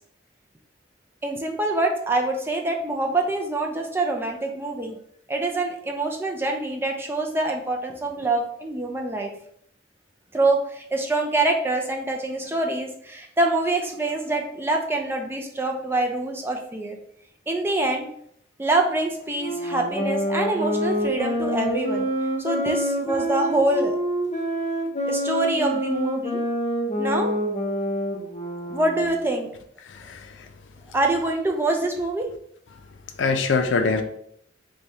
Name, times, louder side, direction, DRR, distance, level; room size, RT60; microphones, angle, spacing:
voice 1, 1.2-5.0 5.3-9.3 10.3-17.0 17.5-18.1 18.6-22.1 22.4-24.0 25.1-26.4 27.0-27.4 28.6-29.5 30.9-32.2, right 2 dB, 10° right, 2 dB, 0.4 m, -25 dB
sound 1, 19.4-29.4, equal, 35° left, 0.7 m, -27 dB
voice 2, 29.9-30.5 33.2-34.0, left 4 dB, 85° left, 7 dB, 0.4 m, -24 dB
4.6 x 2.2 x 2.7 m, 0.68 s
head